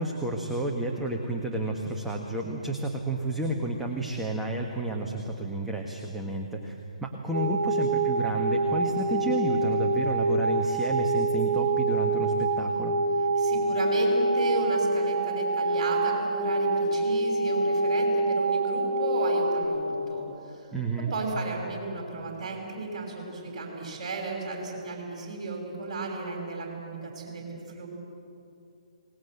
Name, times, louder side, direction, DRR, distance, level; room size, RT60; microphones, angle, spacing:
voice 1, 0.0-12.9 20.7-21.1, right 2 dB, 5° right, -1 dB, 1.5 m, -31 dB
sound 1, 7.3-19.7, right 2 dB, 65° right, 1.6 m, -26 dB
voice 2, 13.4-20.7 21.0-27.9, right 3 dB, 35° right, -1 dB, 5.9 m, -34 dB
25.5 x 19.5 x 8.0 m, 2.7 s
figure-of-eight pair, 135°, 4 cm